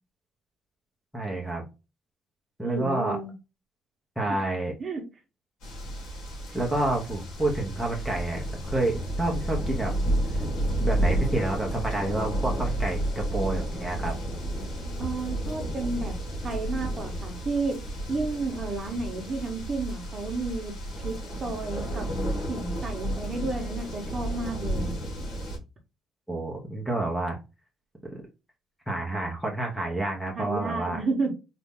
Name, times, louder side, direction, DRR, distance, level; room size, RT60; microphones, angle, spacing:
voice 1, 1.1-1.6 2.6-3.2 4.2-4.7 6.5-10.0 10.8-14.1 26.3-27.4 28.9-31.0, right 2 dB, ahead, -1 dB, 0.8 m, -29 dB
voice 2, 2.6-3.3 4.8-5.0 15.0-16.1 16.4-17.7 18.1-20.7 21.0-22.0 22.5-24.9 30.3-31.3, right 3 dB, 25° right, 3 dB, 1.1 m, -31 dB
sound 1, 5.6-25.6, right 1 dB, 80° left, 2.1 m, -31 dB
4.1 x 2.7 x 3.6 m, 0.27 s
cardioid pair, 170°, 0 cm